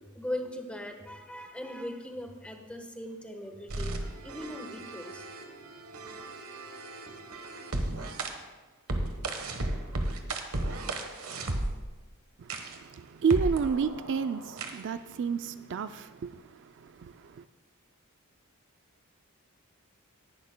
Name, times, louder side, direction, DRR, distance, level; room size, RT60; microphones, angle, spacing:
voice 1, 0.0-5.3, left 1 dB, 5° left, 1.1 m, -39 dB
sound 1, 3.7-8.3 8.9-11.9 12.5-12.8 13.3-14.9, right 2 dB, 75° right, 1.2 m, -35 dB
voice 2, 12.4-17.4, right 6 dB, 55° right, 0.4 m, -31 dB
19.0 x 11.5 x 2.2 m
head